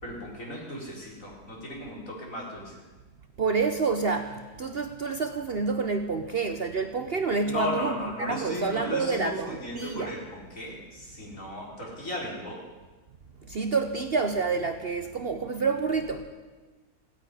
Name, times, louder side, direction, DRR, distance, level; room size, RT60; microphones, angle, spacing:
voice 1, 0.0-2.8 7.5-12.6, left 1 dB, 55° left, -3 dB, 4.4 m, -36 dB
voice 2, 3.4-10.2 13.5-16.3, right 4 dB, 50° right, 7 dB, 0.9 m, -28 dB
16.0 x 9.1 x 9.8 m, 1.3 s
omnidirectional pair, 1.6 m